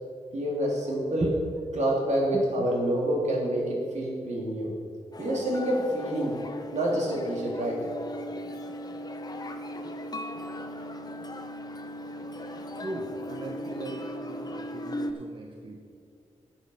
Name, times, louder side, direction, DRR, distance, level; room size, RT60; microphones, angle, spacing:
voice 1, 0.3-1.3 1.8-4.7 5.2-6.3 6.7-7.8, right 1 dB, 70° right, -3 dB, 2.8 m, -27 dB
sound 1, 5.1-15.1, left 1 dB, 30° left, 0.8 m, -38 dB
voice 2, 12.6-15.8, right 2 dB, 40° right, 1 dB, 0.9 m, -37 dB
12.0 x 7.4 x 5.4 m, 2.3 s
wide cardioid pair, 120°, 12 cm